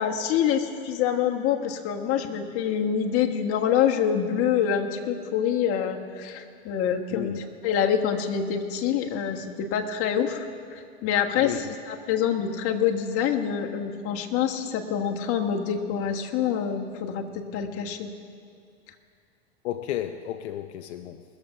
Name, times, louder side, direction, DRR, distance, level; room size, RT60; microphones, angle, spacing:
voice 1, 0.0-10.4 10.7-18.1, left 8 dB, 45° left, 1.3 m, -26 dB
voice 2, 7.1-7.5 11.4-11.7 19.6-21.2, left 11 dB, 80° left, 0.6 m, -33 dB
21.5 x 7.2 x 5.6 m
hypercardioid pair, 110°, 33 cm